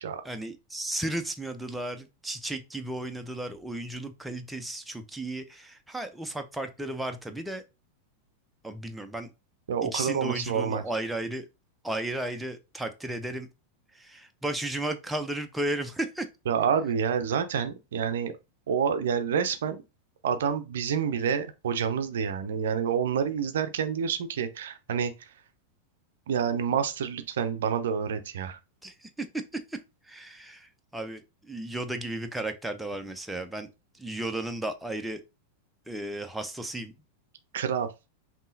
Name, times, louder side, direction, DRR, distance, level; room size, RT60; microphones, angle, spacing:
voice 1, 0.2-7.6 8.6-9.3 9.8-11.4 11.8-13.5 14.0-16.3 28.8-29.8 30.1-33.7 34.0-35.2 35.9-36.9, right 1 dB, 5° right, 0.5 m, -34 dB
voice 2, 9.7-10.8 16.5-18.3 18.7-19.8 20.2-25.1 26.3-28.6 37.5-37.9, right 7 dB, 60° right, 0.5 m, -28 dB
5.4 x 2.8 x 2.6 m
figure-of-eight pair, 90°, 0 cm